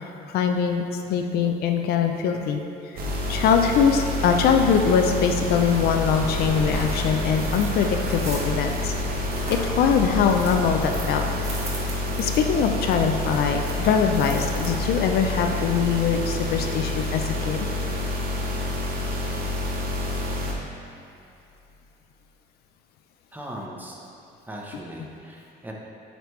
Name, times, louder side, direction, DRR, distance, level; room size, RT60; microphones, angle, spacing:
voice 1, 0.3-2.6 2.9-3.0 3.3-8.9 9.2-11.3 12.2-17.7, left 6 dB, 70° left, 4 dB, 0.4 m, -22 dB
sound 1, 3.0-20.5, left 1 dB, 60° right, 0.9 m, -28 dB
sound 2, 5.3-15.1, right 1 dB, 40° right, 1.3 m, -36 dB
voice 2, 23.3-24.0 24.5-25.7, right 1 dB, 10° right, -2 dB, 0.8 m, -38 dB
8.9 x 3.3 x 3.1 m, 2.7 s
cardioid pair, 110°, 17 cm